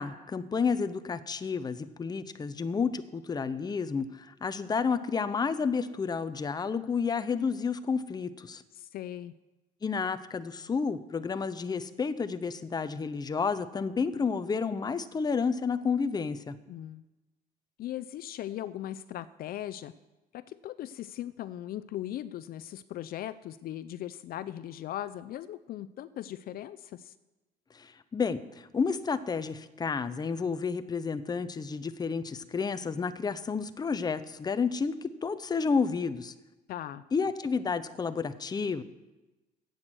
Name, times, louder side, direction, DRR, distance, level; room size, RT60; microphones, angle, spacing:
voice 1, 0.0-8.6 9.8-16.5 27.7-36.3 37.1-38.8, left 5 dB, 25° left, 12 dB, 0.7 m, -31 dB
voice 2, 8.7-9.3 16.7-17.0 17.8-19.9 20.3-27.1 36.7-37.0, left 12 dB, 60° left, 15 dB, 0.5 m, -39 dB
10.5 x 8.1 x 7.6 m, 1.1 s
cardioid pair, 110°, 17 cm